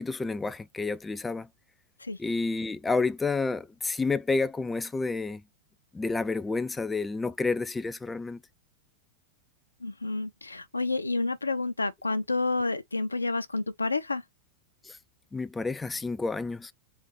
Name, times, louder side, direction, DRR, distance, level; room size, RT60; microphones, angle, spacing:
voice 1, 0.0-1.5 2.2-5.4 5.9-8.4 14.8-15.0 15.3-16.7, left 3 dB, 10° left, 0.3 m, -30 dB
voice 2, 9.8-14.2, left 3 dB, 80° left, 0.6 m, -29 dB
4.1 x 2.5 x 4.5 m
figure-of-eight pair, 90°, 0 cm